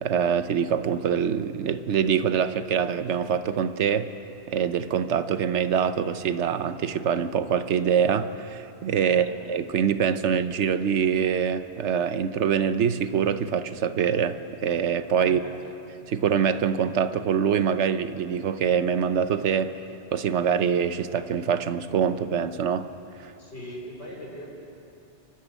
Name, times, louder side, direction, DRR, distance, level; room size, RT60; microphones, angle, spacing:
voice 1, 0.0-4.1 4.5-15.4 16.1-19.7 20.1-22.9 23.2-23.3, right 7 dB, 85° right, 11 dB, 1.1 m, -24 dB
voice 2, 9.0-9.4 15.2-15.6 23.4-24.5, equal, 70° left, -2 dB, 4.4 m, -40 dB
29.5 x 12.0 x 8.2 m, 2.9 s
omnidirectional pair, 1.1 m